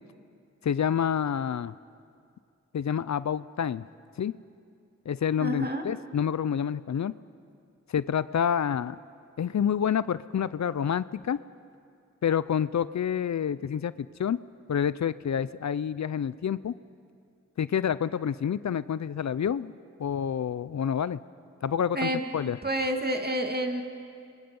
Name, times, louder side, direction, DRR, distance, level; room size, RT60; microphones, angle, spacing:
voice 1, 0.6-1.7 2.7-3.9 4.2-4.3 5.1-7.1 7.9-9.0 9.4-11.4 12.2-14.4 14.7-16.7 17.6-19.7 20.0-21.2 21.6-22.6, left 8 dB, 70° left, 17 dB, 0.5 m, -28 dB
voice 2, 5.4-5.8 21.9-22.2 22.6-23.8, right 1 dB, 35° right, 4 dB, 2.4 m, -28 dB
28.5 x 22.0 x 5.4 m, 2.4 s
cardioid pair, 45°, 29 cm